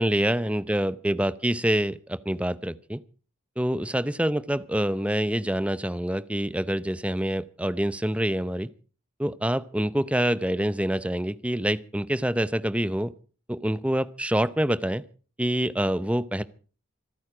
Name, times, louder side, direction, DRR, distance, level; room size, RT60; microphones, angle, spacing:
voice 1, 0.0-3.0 3.6-8.7 9.2-13.1 13.5-15.0 15.4-16.4, right 1 dB, 5° right, 15 dB, 0.6 m, -26 dB
26.5 x 9.4 x 4.9 m, 0.39 s
head